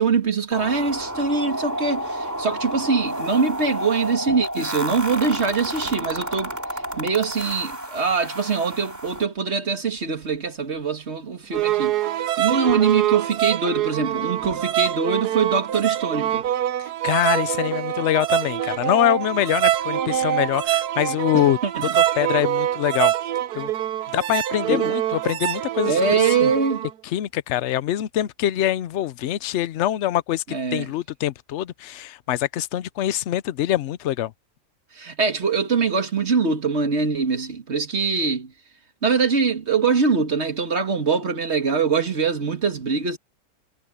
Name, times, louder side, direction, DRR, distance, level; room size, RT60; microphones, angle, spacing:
voice 1, 0.0-6.5 7.0-16.5 21.3-21.9 24.7-24.9 25.9-26.9 30.5-30.9 35.0-38.5 39.0-43.2, right 5 dB, 45° right, 2.3 m, -23 dB
sound 1, 0.5-9.2, equal, 10° right, 2.9 m, -31 dB
sound 2, 4.3-4.7 5.6-6.2 6.6-7.7 8.4-8.5 9.1-11.1 11.4-11.9 12.7-13.0 14.4-14.9 15.7-15.8 16.3-16.8, right 5 dB, 65° right, 2.7 m, -47 dB
sound 3, 11.5-26.9, right 12 dB, 90° right, 1.4 m, -24 dB
voice 2, 16.8-21.6 21.9-23.1 23.5-23.7 24.1-26.0 26.4-26.5 27.0-34.3, left 12 dB, 60° left, 0.8 m, -24 dB
omnidirectional pair, 1.6 m